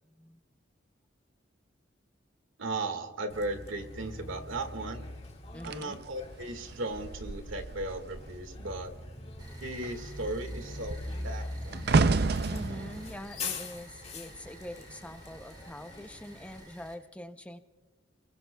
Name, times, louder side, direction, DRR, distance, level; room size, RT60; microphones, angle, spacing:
voice 1, 2.6-5.1 5.6-8.9 9.6-11.8, right 2 dB, 85° right, 7 dB, 1.9 m, -36 dB
Bus, 3.3-16.6, left 2 dB, 30° left, 1.9 m, -43 dB
voice 2, 5.5-6.0 12.5-17.6, left 1 dB, 5° left, 8 dB, 0.6 m, -44 dB
sound 1, 5.6-8.4 8.7-9.0 9.4-14.7 15.4-15.7, right 3 dB, 55° right, 0.5 m, -31 dB
sound 2, 9.4-16.9, right 1 dB, 20° right, 2.9 m, -53 dB
29.5 x 21.5 x 2.3 m, 1.3 s
head